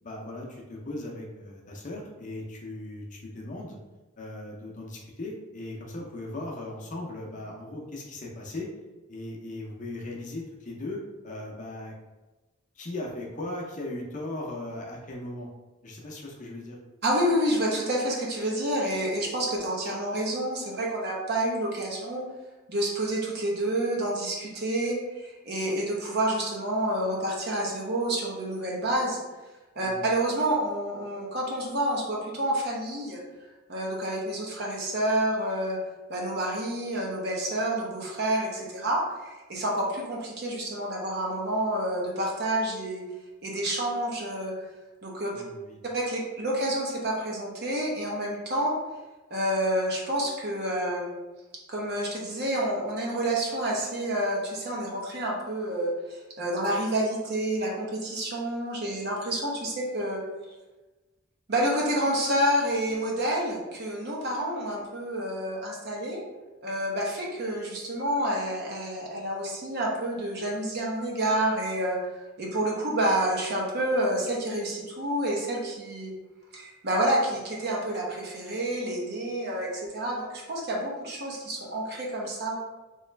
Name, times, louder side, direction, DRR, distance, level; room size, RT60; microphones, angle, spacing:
voice 1, 0.0-3.8 4.2-8.7 9.1-11.9 12.8-15.5 15.8-16.8 29.8-30.0 45.3-45.8, left 1 dB, 40° left, -1 dB, 0.6 m, -38 dB
voice 2, 17.0-22.2 22.7-29.2 29.8-33.2 33.7-35.8 36.1-43.0 43.4-44.5 45.0-45.4 45.9-48.7 49.3-51.1 51.7-60.2 61.5-66.2 66.6-72.0 72.4-76.1 76.5-82.6, right 1 dB, 50° right, -2 dB, 0.9 m, -28 dB
3.1 x 3.0 x 3.2 m, 1.2 s
head